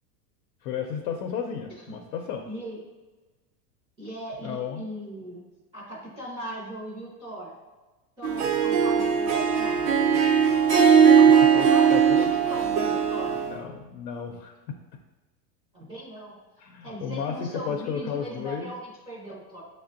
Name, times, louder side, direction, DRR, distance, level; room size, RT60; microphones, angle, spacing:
voice 1, 0.6-2.4 4.4-4.8 11.1-12.3 13.4-14.5 16.6-18.7, left 7 dB, 80° left, 3 dB, 0.6 m, -33 dB
voice 2, 2.4-2.8 4.0-5.5 5.7-7.5 8.2-9.8 11.1-13.4 15.7-16.4 16.8-19.6, equal, 15° right, -7 dB, 0.4 m, -39 dB
Harp, 8.2-13.6, right 7 dB, 80° right, 0.8 m, -19 dB
6.3 x 2.1 x 2.5 m, 1.2 s
supercardioid pair, 150°, 48 cm